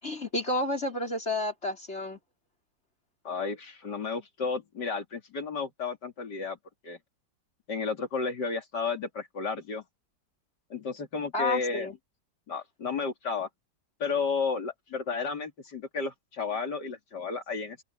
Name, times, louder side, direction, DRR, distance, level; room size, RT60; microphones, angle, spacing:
voice 1, 0.0-2.2 11.3-11.9, left 2 dB, 40° left, 5.2 m, -30 dB
voice 2, 3.2-6.6 6.8-7.0 7.7-9.8 10.7-11.9 12.5-13.5 14.0-17.8, left 4 dB, 75° left, 3.4 m, -32 dB
omnidirectional pair, 1.8 m